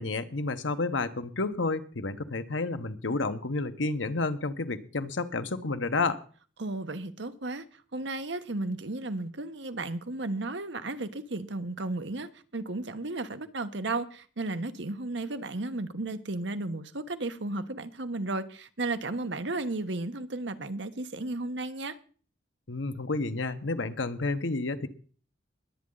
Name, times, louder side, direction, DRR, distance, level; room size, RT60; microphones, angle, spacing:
voice 1, 0.0-6.2 22.7-24.9, left 3 dB, 90° left, 1.1 m, -30 dB
voice 2, 6.6-7.6 7.9-22.0, right 2 dB, 70° right, 1.2 m, -34 dB
21.0 x 8.7 x 4.0 m
head